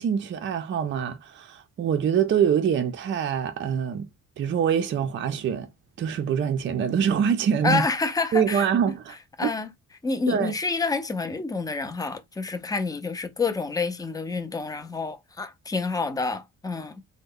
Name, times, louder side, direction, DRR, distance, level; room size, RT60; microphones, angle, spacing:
voice 1, 0.0-4.1 4.4-5.7 6.0-7.8 8.3-9.2 9.4-9.5 10.3-10.5, right 8 dB, 40° right, 0.4 m, -24 dB
voice 2, 7.6-8.7 9.4-9.7 10.0-17.0, left 4 dB, 10° left, 0.5 m, -28 dB
3.0 x 2.1 x 3.6 m
cardioid pair, 90°, 30 cm